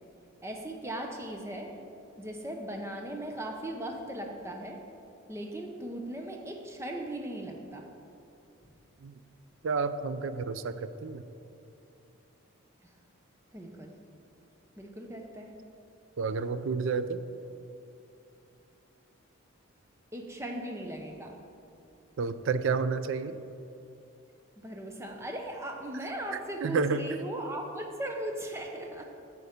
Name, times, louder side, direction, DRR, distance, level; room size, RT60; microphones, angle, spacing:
voice 1, 0.4-1.8 2.2-4.8 5.3-7.9 12.8-12.9 13.5-14.0 14.8-15.6 20.1-21.4 24.6-29.0, right 1 dB, 15° right, 2 dB, 0.7 m, -38 dB
voice 2, 9.6-11.2 16.2-17.2 22.2-23.4 26.3-27.0, right 5 dB, 70° right, 12 dB, 0.4 m, -30 dB
8.5 x 6.9 x 5.1 m, 2.7 s
head